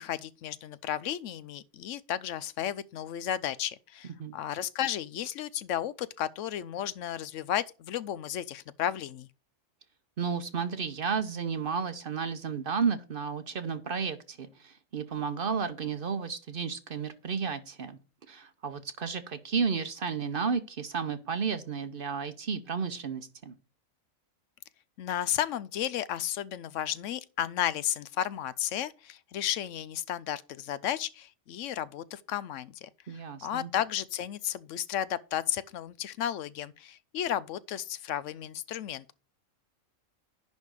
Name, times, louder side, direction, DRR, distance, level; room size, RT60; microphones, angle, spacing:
voice 1, 0.0-9.3 25.0-32.9 33.4-39.1, left 11 dB, 75° left, 0.9 m, -33 dB
voice 2, 10.2-18.0 18.3-23.5 33.1-33.7, right 6 dB, 50° right, 0.8 m, -32 dB
10.5 x 3.5 x 6.3 m
omnidirectional pair, 1.4 m